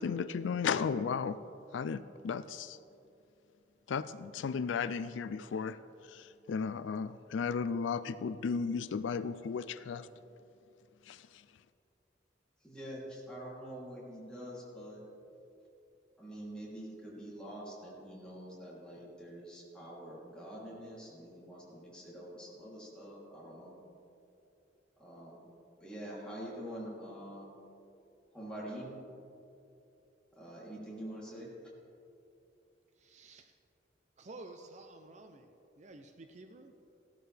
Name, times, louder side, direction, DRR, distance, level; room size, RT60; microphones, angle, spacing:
voice 1, 0.0-1.4 1.7-2.8 3.9-5.8 6.1-10.1 11.1-11.4, left 6 dB, 80° left, 14 dB, 0.4 m, -35 dB
voice 2, 12.6-15.0 16.2-23.7 25.0-25.4 25.8-27.5 28.3-29.0 30.3-31.5, equal, 5° left, -7 dB, 3.0 m, -45 dB
voice 3, 33.0-33.6 34.2-35.5 35.8-36.7, right 2 dB, 40° right, 6 dB, 0.5 m, -51 dB
15.5 x 12.5 x 3.4 m, 2.7 s
head